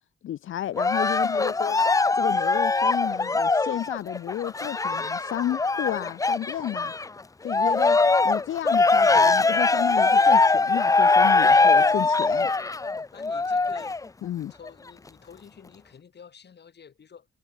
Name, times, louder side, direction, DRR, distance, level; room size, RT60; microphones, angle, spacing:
voice 1, 0.2-1.8 2.1-6.9 7.4-8.0 8.2-12.5 14.2-14.5, left 12 dB, 70° left, 0.6 m, -32 dB
Cheering, 0.8-7.1 7.5-14.0 14.7-14.8, left 3 dB, 15° left, 0.5 m, -21 dB
voice 2, 7.7-8.3 12.2-12.7 13.1-14.0 14.5-17.3, left 7 dB, 55° left, 6.0 m, -50 dB
cardioid pair, 110°, 21 cm